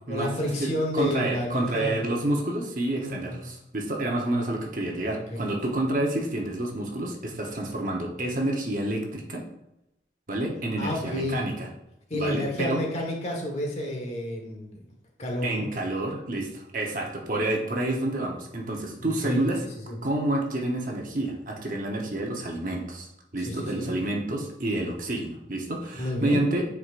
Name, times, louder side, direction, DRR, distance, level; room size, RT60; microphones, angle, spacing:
voice 1, 0.1-2.0 2.9-3.4 5.1-5.5 10.8-11.4 12.1-14.9 15.2-15.7 19.0-19.4 19.9-20.0 23.4-23.9 25.9-26.4, left 1 dB, 35° left, 0 dB, 1.4 m, -30 dB
voice 2, 0.6-9.4 10.3-11.7 12.1-12.8 15.4-19.7 20.0-23.1 23.3-26.7, right 1 dB, 45° right, 1 dB, 1.0 m, -29 dB
9.4 x 4.7 x 2.5 m, 0.86 s
head